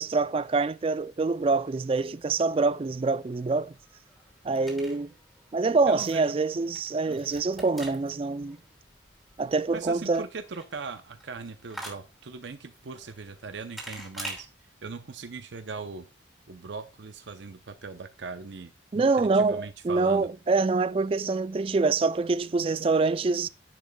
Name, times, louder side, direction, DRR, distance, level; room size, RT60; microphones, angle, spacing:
voice 1, 0.0-3.7 4.4-5.1 5.5-8.6 9.4-10.2 18.9-23.5, right 3 dB, 30° right, 0.3 m, -25 dB
sound 1, 3.2-14.4, right 1 dB, ahead, 2.6 m, -46 dB
voice 2, 5.9-6.4 7.1-7.2 9.7-14.5 14.8-16.1 16.5-20.3, right 4 dB, 65° right, 0.6 m, -40 dB
9.9 x 6.6 x 2.2 m
head